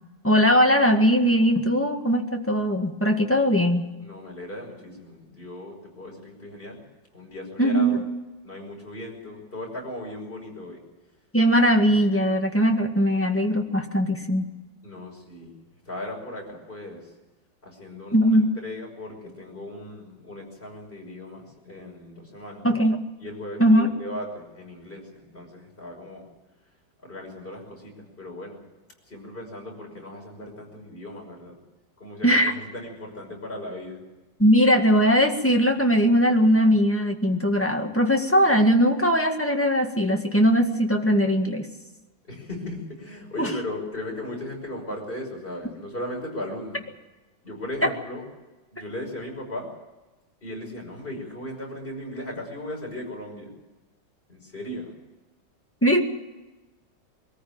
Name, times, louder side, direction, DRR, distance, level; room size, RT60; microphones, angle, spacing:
voice 1, 0.2-3.9 7.6-8.0 11.3-14.5 18.1-18.5 22.6-23.0 23.6-23.9 32.2-32.5 34.4-41.7 43.4-43.5 47.8-47.9 55.8-56.0, equal, 5° left, 2 dB, 1.7 m, -20 dB
voice 2, 4.0-6.8 7.1-7.9 8.4-10.8 14.8-15.5 15.9-17.0 17.6-22.7 23.2-26.2 27.0-28.6 29.1-31.6 32.0-32.4 32.7-34.0 42.3-46.8 47.4-48.2 48.7-49.7 50.4-53.5 54.3-54.9, left 1 dB, 25° left, 0 dB, 6.1 m, -37 dB
22.5 x 14.5 x 8.8 m, 1.1 s
omnidirectional pair, 2.1 m